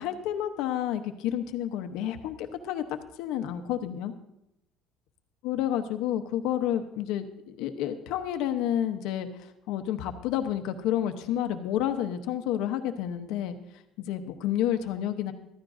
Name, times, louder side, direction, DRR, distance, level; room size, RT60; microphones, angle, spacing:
voice 1, 0.0-2.8 3.2-4.1 5.4-9.3 9.7-13.6 14.0-15.3, left 11 dB, 70° left, 8 dB, 0.9 m, -30 dB
15.0 x 13.5 x 2.6 m, 0.84 s
cardioid pair, 175°, 0 cm